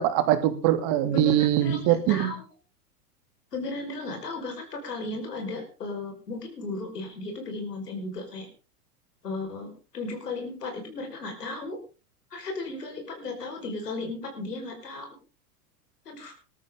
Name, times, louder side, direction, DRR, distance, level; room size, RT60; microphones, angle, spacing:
voice 1, 0.0-2.3, right 12 dB, 50° right, 8 dB, 2.8 m, -23 dB
voice 2, 1.0-2.4 3.5-8.5 9.2-11.8 12.3-15.2 16.1-16.3, left 3 dB, 90° left, 3 dB, 5.3 m, -35 dB
20.0 x 13.0 x 3.8 m, 0.34 s
hypercardioid pair, 95°, 46 cm